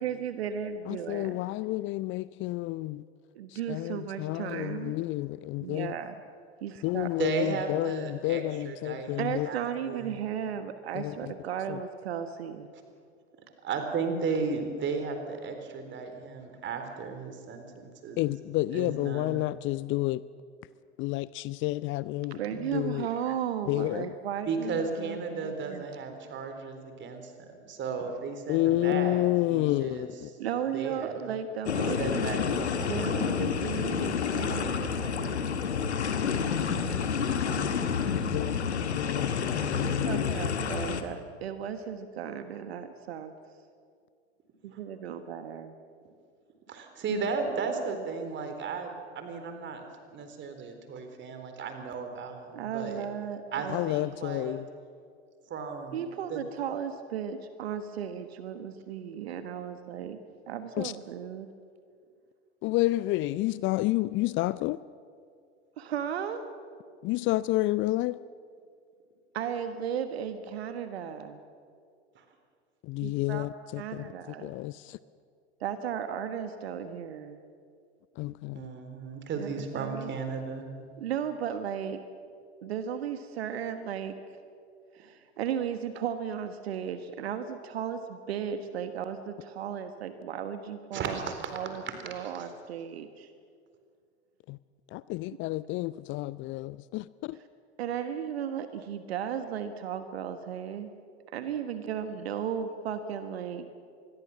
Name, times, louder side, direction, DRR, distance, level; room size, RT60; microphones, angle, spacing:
voice 1, 0.0-1.4 3.3-4.9 5.6-6.1 6.6-7.1 9.2-12.7 22.3-25.8 30.4-32.2 32.9-35.4 39.8-43.3 44.6-45.7 52.5-53.8 55.9-60.2 60.5-61.5 65.8-66.4 69.3-71.4 73.0-73.5 73.8-74.6 75.6-77.4 79.4-80.1 81.0-82.0 82.6-84.2 84.9-91.2 91.5-93.3 97.8-100.9 101.3-103.7, right 8 dB, 65° right, 1.5 m, -35 dB
voice 2, 0.9-3.0 3.5-5.9 6.8-9.5 10.9-11.3 11.7-11.8 18.2-20.2 21.0-23.1 23.7-24.1 28.5-30.3 37.6-37.7 38.3-40.3 53.7-54.7 60.8-60.9 62.6-64.8 67.0-68.2 72.8-74.1 74.4-75.0 78.2-78.7 94.5-94.6 94.9-97.4, left 18 dB, 35° left, 0.6 m, -30 dB
voice 3, 7.2-10.1 13.6-18.2 18.7-19.4 24.5-30.1 30.7-31.1 31.7-33.5 36.9-37.0 38.0-38.3 44.7-44.8 46.7-49.8 50.1-53.1 53.5-54.6 55.5-56.4 72.2-72.3 78.5-80.7 90.9-91.5 92.2-92.4, right 5 dB, 35° right, 4.1 m, -35 dB
sound 1, 31.6-41.0, left 6 dB, 75° left, 1.7 m, -29 dB
26.0 x 21.0 x 7.3 m
figure-of-eight pair, 80°, 34 cm